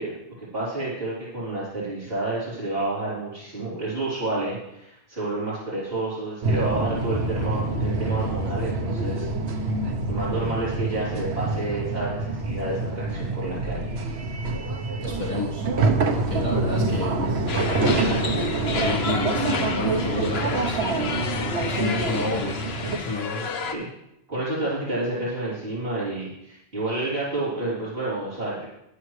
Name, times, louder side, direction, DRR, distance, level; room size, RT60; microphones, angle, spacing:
voice 1, 0.0-9.3 10.0-13.9 22.6-23.1 23.6-23.9 24.3-28.7, right 2 dB, 65° right, -10 dB, 3.9 m, -30 dB
sound 1, 6.4-23.0, right 2 dB, 90° right, 1.2 m, -26 dB
voice 2, 15.0-15.6 16.1-17.4 18.8-22.6 23.0-23.5, left 2 dB, 45° left, -5 dB, 1.7 m, -30 dB
sound 2, 17.5-23.7, left 5 dB, 70° left, 1.1 m, -31 dB
11.5 x 11.5 x 3.2 m, 0.82 s
omnidirectional pair, 1.1 m